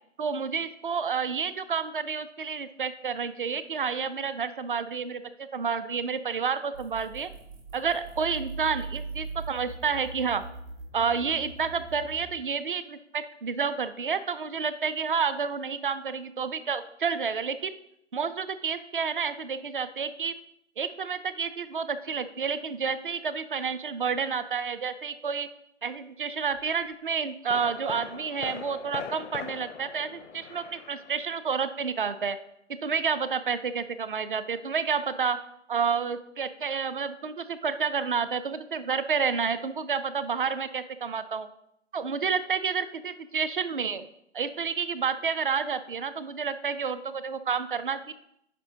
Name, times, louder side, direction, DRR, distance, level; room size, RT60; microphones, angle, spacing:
voice 1, 0.2-7.3 7.7-10.4 10.9-17.7 18.1-20.3 20.8-25.5 25.8-32.4 32.7-35.4 35.7-41.5 41.9-44.1 44.3-48.1, right 6 dB, 45° right, 13 dB, 0.4 m, -30 dB
sound 1, 6.7-12.3, right 3 dB, 80° right, 1.8 m, -40 dB
sound 2, 26.5-26.7 27.5-31.6 31.8-31.9, left 7 dB, 85° left, 0.6 m, -41 dB
9.3 x 5.3 x 2.7 m, 0.76 s
hypercardioid pair, 165°, 36 cm